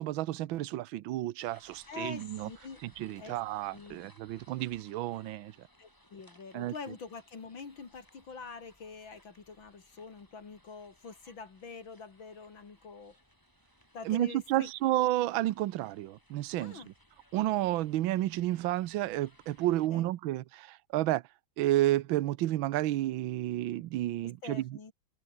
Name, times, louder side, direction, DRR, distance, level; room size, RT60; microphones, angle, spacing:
voice 1, 0.0-2.5 3.0-5.7 6.5-6.7 14.1-16.8 17.3-21.2 21.6-24.6, right 15 dB, 75° right, 1.5 m, -31 dB
sound 1, 1.4-19.9, equal, 10° left, 7.8 m, -63 dB
voice 2, 1.9-2.8 3.2-3.4 3.7-4.0 5.8-13.2 13.9-14.7 16.6-16.9 19.9-20.1 24.2-24.9, left 5 dB, 70° left, 3.6 m, -45 dB
omnidirectional pair, 2.3 m